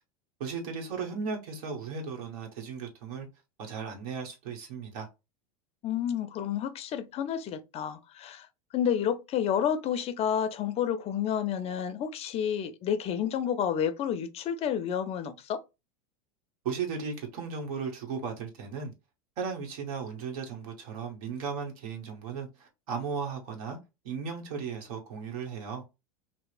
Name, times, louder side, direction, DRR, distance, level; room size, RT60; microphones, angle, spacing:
voice 1, 0.4-3.3 3.6-5.1 16.6-18.9 19.4-23.8 24.0-25.8, right 5 dB, 65° right, 1.1 m, -36 dB
voice 2, 5.8-8.5 8.7-15.6, left 8 dB, 35° left, 0.5 m, -30 dB
2.8 x 2.0 x 2.4 m
hypercardioid pair, 105°, 19 cm